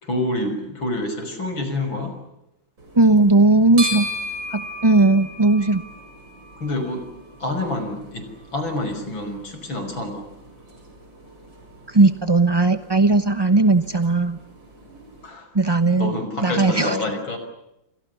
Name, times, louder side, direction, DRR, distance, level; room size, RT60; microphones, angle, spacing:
voice 1, 0.0-2.1 6.6-7.0 7.4-10.3 15.2-15.5 16.0-17.4, left 1 dB, 85° left, 7 dB, 6.6 m, -27 dB
sound 1, 2.8-15.3, equal, 70° right, 8.3 m, -37 dB
voice 2, 2.9-4.1 4.5-5.8 11.9-14.4 15.5-16.2 16.4-17.0, right 2 dB, 25° right, 10 dB, 0.5 m, -17 dB
30.0 x 26.0 x 6.9 m, 0.86 s
omnidirectional pair, 2.1 m